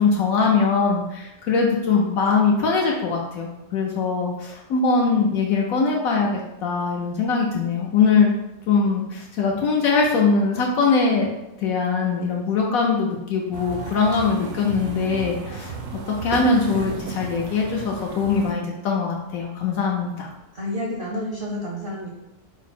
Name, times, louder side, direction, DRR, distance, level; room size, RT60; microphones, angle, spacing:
voice 1, 0.0-6.3 6.6-8.3 8.7-11.3 11.6-15.7 16.2-20.3, left 4 dB, 70° left, -1 dB, 1.0 m, -21 dB
sound 1, 13.5-18.5, right 5 dB, 80° right, 1.1 m, -34 dB
voice 2, 20.5-22.1, left 1 dB, 50° right, -3 dB, 0.6 m, -29 dB
4.6 x 2.0 x 4.2 m, 0.93 s
omnidirectional pair, 1.6 m